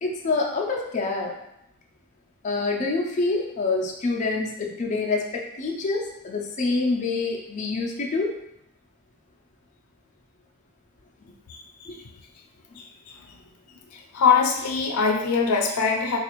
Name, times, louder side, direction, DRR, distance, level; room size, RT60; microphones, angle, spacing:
voice 1, 0.0-1.3 2.4-8.4 11.9-12.0, left 3 dB, 35° left, -2 dB, 0.5 m, -26 dB
voice 2, 11.5-12.0 12.8-12.9 14.1-16.2, left 5 dB, 85° left, 2 dB, 0.5 m, -22 dB
4.0 x 2.4 x 3.0 m, 0.80 s
head